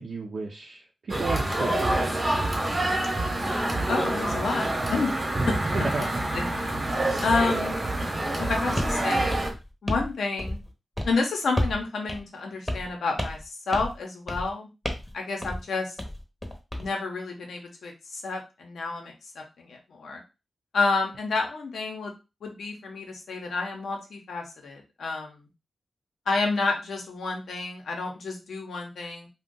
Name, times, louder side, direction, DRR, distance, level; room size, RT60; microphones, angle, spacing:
voice 1, 0.0-2.1 5.7-6.2 7.3-7.4, right 3 dB, 70° right, 0 dB, 0.5 m, -33 dB
sound 1, 1.1-9.5, right 1 dB, 35° right, 1.0 m, -27 dB
voice 2, 3.9-5.1 5.4-5.5 6.0-6.1 6.3-7.8 8.4-9.4 9.8-10.6 11.0-14.7 15.1-15.9 16.8-20.2 20.7-22.1 22.4-25.4 26.3-29.3, left 3 dB, 80° left, 2 dB, 0.9 m, -30 dB
sound 2, 8.8-9.0 9.3-10.1 10.4-10.7 11.0-11.2 11.6-11.8 12.1-12.2 12.7-12.9 13.2-13.5 13.7-14.0 14.3-14.5 14.8-15.1 15.4-15.6 16.0-16.9, left 1 dB, 10° left, 0.8 m, -31 dB
2.5 x 2.3 x 3.7 m, 0.28 s
cardioid pair, 55°, 0 cm